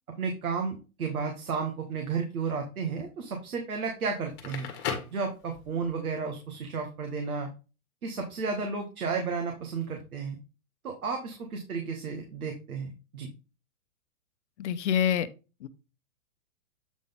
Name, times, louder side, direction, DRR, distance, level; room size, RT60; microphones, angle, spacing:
voice 1, 0.2-4.7 5.1-7.5 8.0-10.4 10.8-13.3, right 5 dB, 85° right, 1.7 m, -33 dB
Crackle, 4.2-5.9, left 7 dB, 25° left, 1.6 m, -36 dB
voice 2, 14.6-15.3 15.6-15.7, left 9 dB, 55° left, 0.8 m, -26 dB
8.1 x 3.9 x 3.6 m
hypercardioid pair, 150°, 42 cm